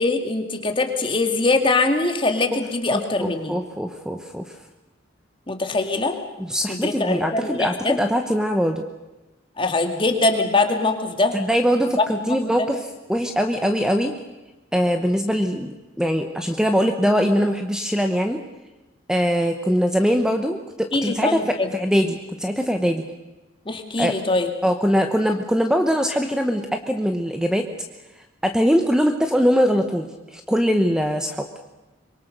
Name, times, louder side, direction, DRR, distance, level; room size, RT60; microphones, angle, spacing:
voice 1, 0.0-3.6 5.5-6.1 6.7-8.0 9.6-11.4 12.2-12.7 20.9-21.7 23.7-24.5, left 2 dB, 25° left, 5 dB, 2.2 m, -22 dB
voice 2, 2.9-4.5 6.4-8.8 11.3-12.8 13.1-14.1 14.7-18.4 19.1-23.0 24.0-24.1 24.6-27.7 28.4-30.1 30.3-31.5, equal, 5° right, 6 dB, 1.0 m, -22 dB
24.5 x 22.5 x 6.7 m, 1.1 s
head